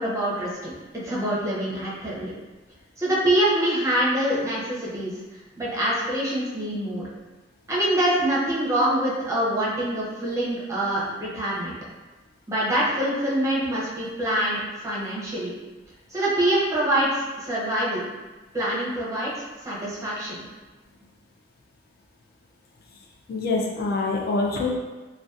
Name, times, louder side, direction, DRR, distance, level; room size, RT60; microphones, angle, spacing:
voice 1, 0.0-2.3 3.0-5.1 5.6-7.1 7.7-11.8 12.5-15.5 16.1-18.0 18.5-19.3 19.7-20.4, right 1 dB, 15° right, -7 dB, 0.6 m, -25 dB
voice 2, 23.3-24.8, left 3 dB, 55° left, 0 dB, 0.3 m, -25 dB
2.6 x 2.1 x 2.3 m, 1.2 s
head